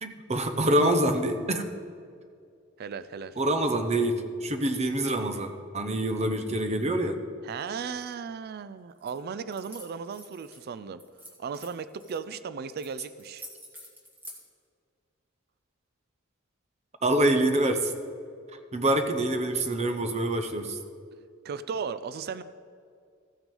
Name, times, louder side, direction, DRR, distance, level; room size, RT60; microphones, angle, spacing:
voice 1, 0.0-1.6 3.4-7.2 17.0-17.9 18.7-20.8, right 1 dB, 30° right, 7 dB, 0.8 m, -26 dB
voice 2, 2.8-3.4 7.4-11.0 11.4-13.4 21.4-22.4, right 6 dB, 50° right, 13 dB, 0.3 m, -36 dB
sound 1, 9.0-9.2 9.5-10.6 11.0-12.2 12.8-12.9 13.2-14.4, equal, 10° right, 1.8 m, -47 dB
14.5 x 6.0 x 5.4 m, 2.3 s
head